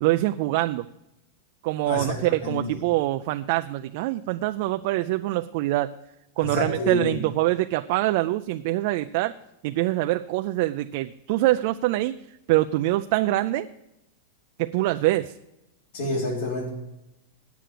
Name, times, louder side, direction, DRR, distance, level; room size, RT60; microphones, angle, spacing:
voice 1, 0.0-0.9 1.6-5.9 6.4-9.3 9.6-12.2 12.5-13.7 14.6-15.3, right 17 dB, 50° right, 9 dB, 0.4 m, -24 dB
voice 2, 1.8-2.8 6.4-7.2 15.9-16.7, left 2 dB, 75° left, -3 dB, 4.2 m, -29 dB
9.1 x 8.3 x 7.6 m, 0.90 s
supercardioid pair, 155°, 0 cm